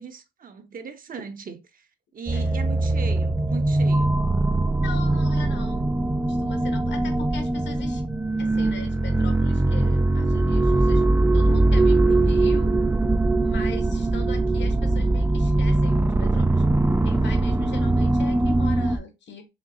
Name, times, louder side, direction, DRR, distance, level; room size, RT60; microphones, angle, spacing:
voice 1, 0.0-4.1, right 6 dB, 45° right, 0.9 m, -39 dB
sound 1, 2.3-19.0, right 2 dB, 10° right, 0.4 m, -21 dB
voice 2, 4.8-5.9 6.2-8.0 8.4-12.7 13.4-16.6 17.0-19.5, left 4 dB, 65° left, 1.3 m, -40 dB
4.4 x 3.3 x 2.8 m
cardioid pair, 90°, 20 cm